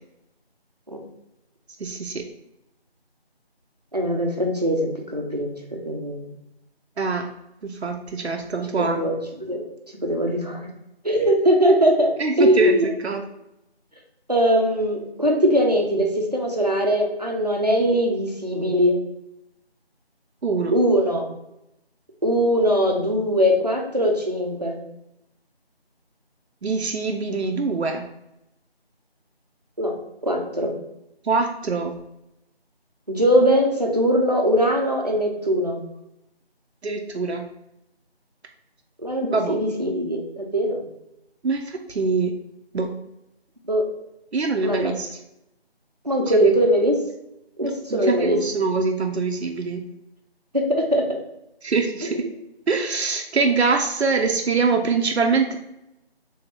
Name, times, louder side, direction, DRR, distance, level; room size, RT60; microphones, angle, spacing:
voice 1, 1.8-2.2 7.0-7.3 7.6-9.0 12.2-13.2 20.4-20.7 26.6-28.1 31.2-31.9 36.8-37.5 39.2-39.6 41.4-42.4 42.7-42.9 44.3-45.2 46.2-46.5 47.6-49.8 51.6-52.3 52.7-55.6, right 4 dB, 85° right, 4 dB, 0.6 m, -24 dB
voice 2, 3.9-5.5 5.8-6.3 8.8-9.1 9.5-9.6 10.0-10.7 11.0-12.1 12.4-12.9 14.3-19.0 20.7-21.3 22.2-24.8 29.8-29.9 30.2-30.8 33.1-35.8 39.0-40.8 43.7-43.8 44.6-45.0 46.0-47.0 47.6-48.4 50.5-51.0 52.1-52.3, equal, 40° right, 1 dB, 0.6 m, -21 dB
3.4 x 2.8 x 3.4 m, 0.85 s
figure-of-eight pair, 170°, 32 cm